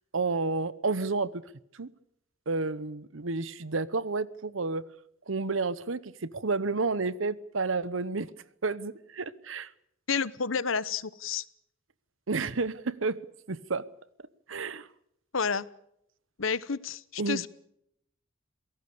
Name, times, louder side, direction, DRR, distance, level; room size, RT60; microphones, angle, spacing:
voice 1, 0.1-1.4 1.7-1.9 2.5-4.8 5.3-8.3 8.6-9.7 12.3-13.2 13.5-13.9 14.5-14.9 17.2-17.4, right 3 dB, 75° right, 18 dB, 1.0 m, -30 dB
voice 2, 10.1-11.4 15.3-15.7 16.4-17.5, left 5 dB, 80° left, 17 dB, 1.0 m, -30 dB
28.0 x 18.0 x 6.8 m, 0.76 s
head